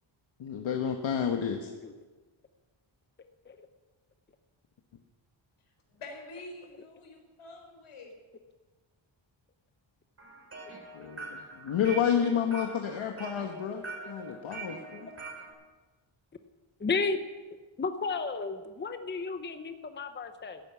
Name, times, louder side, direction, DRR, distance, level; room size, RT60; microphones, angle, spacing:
voice 1, 0.4-1.7 10.9-15.1, left 8 dB, 70° left, 4 dB, 1.4 m, -30 dB
voice 2, 1.5-1.9 3.4-3.6 12.2-12.6 14.0-14.1 16.8-17.2 17.8-20.6, left 4 dB, 20° left, 8 dB, 0.9 m, -33 dB
voice 3, 5.9-8.1, left 2 dB, 85° left, 2 dB, 4.3 m, -46 dB
sound 1, 10.2-15.5, right 3 dB, 30° right, 3.6 m, -44 dB
15.0 x 10.5 x 8.3 m, 1.3 s
wide cardioid pair, 140°, 49 cm